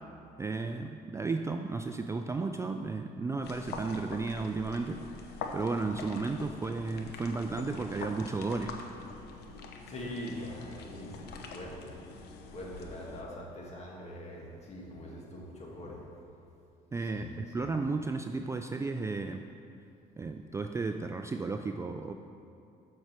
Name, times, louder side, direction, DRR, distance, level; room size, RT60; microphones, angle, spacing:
voice 1, 0.4-5.0 5.5-8.7 16.9-19.4 20.2-22.1, right 3 dB, 15° right, 6 dB, 0.3 m, -33 dB
sound 1, 3.4-13.2, left 4 dB, 80° left, 0.9 m, -44 dB
voice 2, 9.9-12.0 12.5-16.0 17.0-17.4, left 1 dB, 40° left, -3 dB, 2.1 m, -43 dB
7.5 x 5.8 x 6.8 m, 2.5 s
cardioid pair, 110°, 17 cm